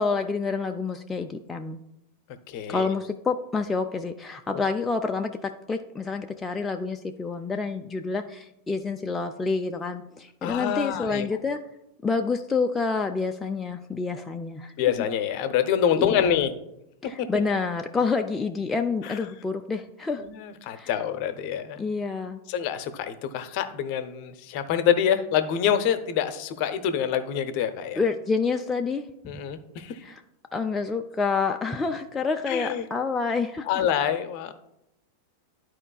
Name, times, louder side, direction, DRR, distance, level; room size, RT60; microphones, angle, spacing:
voice 1, 0.0-1.8 2.7-11.6 12.0-14.7 16.0-16.4 17.0-20.2 20.8-20.9 21.8-22.4 28.0-29.1 29.3-29.4 30.0-30.2 30.5-33.7, left 4 dB, 10° left, 4 dB, 0.4 m, -28 dB
voice 2, 2.5-2.9 10.4-11.3 14.8-16.5 17.0-17.3 19.0-19.2 20.2-21.8 22.5-28.0 29.3-30.0 32.5-32.9 33.7-34.5, left 9 dB, 45° left, 10 dB, 0.6 m, -26 dB
12.0 x 4.5 x 2.3 m, 0.84 s
figure-of-eight pair, 90°, 0 cm